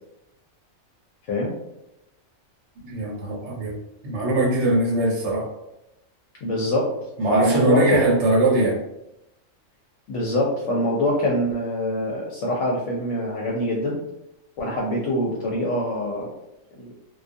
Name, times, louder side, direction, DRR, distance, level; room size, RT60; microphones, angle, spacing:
voice 1, 2.8-3.7 4.0-5.4 7.2-8.8, right 2 dB, 60° right, -3 dB, 1.1 m, -21 dB
voice 2, 6.4-6.9 7.3-8.2 10.1-14.0 14.6-16.3 16.8-16.9, left 1 dB, 70° left, -2 dB, 0.9 m, -24 dB
2.3 x 2.3 x 2.5 m, 0.87 s
omnidirectional pair, 1.4 m